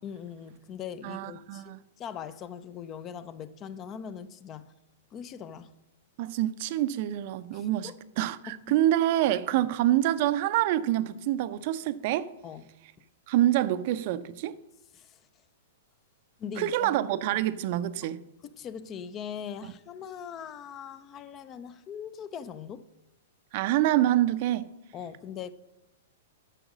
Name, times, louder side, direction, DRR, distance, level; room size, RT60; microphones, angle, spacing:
voice 1, 0.0-4.7 5.1-5.7 7.5-8.0 8.5-8.6 9.5-9.6 12.4-12.7 14.9-15.2 16.4-16.9 18.4-22.9 24.9-25.5, left 8 dB, 30° left, 0.6 m, -41 dB
voice 2, 1.0-1.8 6.2-12.3 13.3-14.6 16.6-18.2 23.5-24.7, right 13 dB, 50° right, 0.6 m, -26 dB
10.0 x 6.3 x 6.1 m
hypercardioid pair, 120°, 0 cm